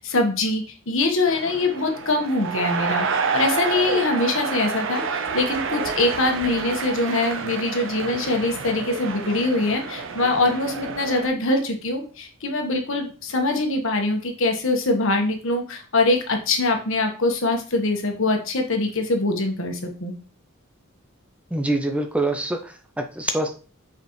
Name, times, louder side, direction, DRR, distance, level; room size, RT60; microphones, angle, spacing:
voice 1, 0.0-3.1 3.3-20.1, left 2 dB, 65° left, 3 dB, 1.3 m, -23 dB
sound 1, 1.3-11.3, right 5 dB, 60° right, 0.7 m, -29 dB
voice 2, 21.5-23.5, right 2 dB, 5° right, 5 dB, 0.5 m, -25 dB
7.1 x 5.1 x 3.1 m, 0.38 s
head